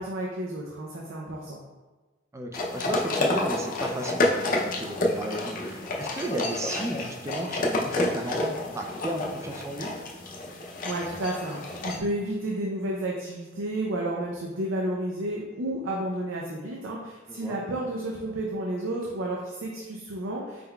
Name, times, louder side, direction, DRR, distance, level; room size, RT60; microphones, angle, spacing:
voice 1, 0.0-1.6 10.6-20.6, right 1 dB, 90° right, -2 dB, 0.5 m, -31 dB
voice 2, 2.3-9.9 17.3-17.6, right 1 dB, 15° right, 3 dB, 0.3 m, -34 dB
sound 1, 2.5-12.0, left 2 dB, 45° left, 0.5 m, -29 dB
4.1 x 3.8 x 2.2 m, 1.2 s
head